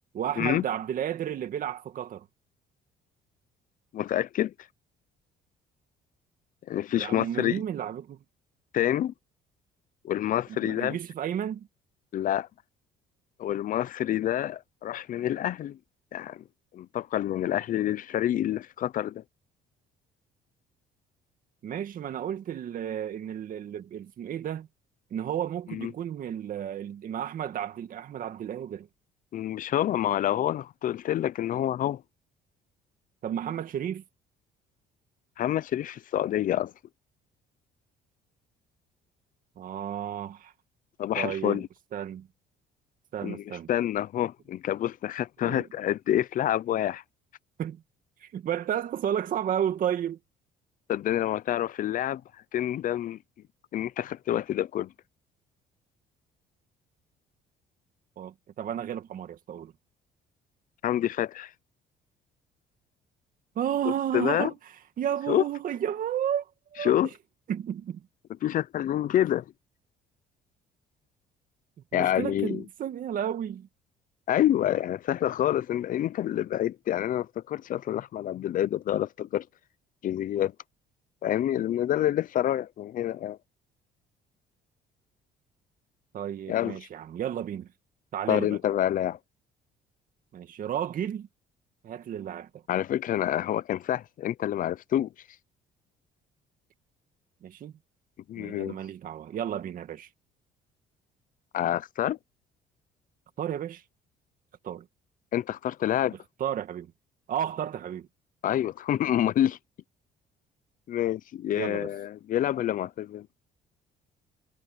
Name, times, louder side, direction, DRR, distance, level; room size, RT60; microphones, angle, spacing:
voice 1, 0.1-2.3 7.0-8.2 10.5-11.7 21.6-24.7 25.1-28.9 33.2-34.0 39.6-40.5 41.2-41.6 41.9-42.3 43.1-43.7 45.4-45.7 47.6-47.8 48.2-50.2 58.2-59.7 63.6-64.6 65.0-66.5 66.7-67.0 67.5-68.0 71.9-73.7 86.1-87.7 88.1-88.6 90.3-91.3 91.8-92.6 97.4-97.7 98.4-100.1 103.4-103.8 104.6-104.9 106.4-106.9 107.3-108.1 111.6-111.9, right 10 dB, 55° right, 2.2 m, -32 dB
voice 2, 3.9-4.5 6.7-7.6 8.7-9.1 10.0-11.0 12.1-12.5 13.4-15.8 16.1-16.4 16.7-19.2 25.7-25.9 29.3-32.0 35.4-36.7 41.0-41.7 43.2-47.0 50.9-52.2 52.5-53.2 53.7-54.9 60.8-61.5 64.1-64.5 65.3-65.4 66.8-67.1 68.4-69.4 71.9-72.6 74.3-79.5 80.0-80.5 81.2-83.4 86.5-86.8 88.3-89.2 92.7-95.1 98.3-98.8 101.5-102.2 105.3-106.2 108.4-109.6 110.9-113.3, left 11 dB, 55° left, 0.7 m, -27 dB
cardioid pair, 110°, 17 cm